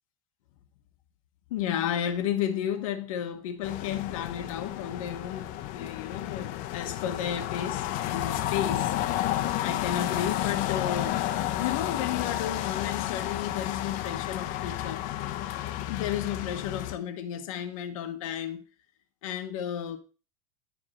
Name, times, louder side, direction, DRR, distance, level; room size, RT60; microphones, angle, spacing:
voice 1, 1.5-11.2 11.6-15.0 15.9-18.6 19.2-20.0, left 10 dB, 75° left, 1.1 m, -33 dB
sound 1, 3.6-17.0, left 13 dB, 50° left, 0.9 m, -31 dB
10.0 x 3.6 x 6.2 m
supercardioid pair, 120°, 17 cm